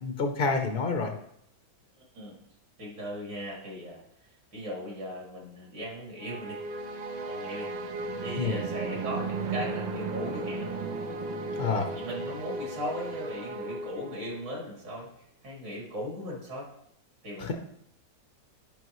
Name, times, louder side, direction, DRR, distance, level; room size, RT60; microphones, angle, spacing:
voice 1, 0.0-1.1 8.4-8.6 11.6-11.9 17.4-17.5, left 4 dB, 70° left, 4 dB, 0.5 m, -28 dB
voice 2, 2.8-4.0 4.5-6.6 7.2-7.7 8.2-10.8 11.9-15.1 15.4-16.7 17.2-17.5, equal, 70° right, -3 dB, 3.3 m, -37 dB
sound 1, 6.2-14.6, right 3 dB, 90° right, 1.6 m, -35 dB
10.5 x 5.6 x 3.1 m, 0.70 s
omnidirectional pair, 2.1 m